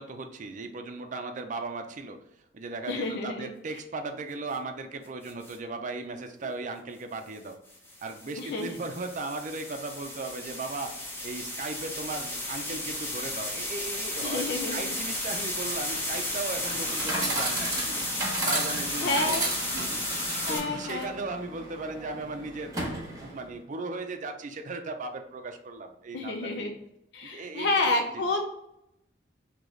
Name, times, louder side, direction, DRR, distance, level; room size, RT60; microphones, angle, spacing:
voice 1, 0.0-2.2 2.5-7.6 8.0-11.0 11.2-18.1 18.5-20.0 20.5-22.7 23.1-26.7 27.2-28.2, right 3 dB, 45° right, 6 dB, 0.5 m, -37 dB
voice 2, 2.9-3.5 8.4-8.7 14.2-14.9 19.0-19.4 20.4-21.1 26.1-26.8 27.1-28.4, left 2 dB, 65° left, 3 dB, 0.4 m, -29 dB
sound 1, 5.2-5.6 7.7-20.6, left 1 dB, 15° left, 0.8 m, -33 dB
Chatter / Coin (dropping), 16.5-23.5, right 1 dB, 20° right, 1.1 m, -34 dB
3.8 x 2.9 x 3.2 m, 0.83 s
head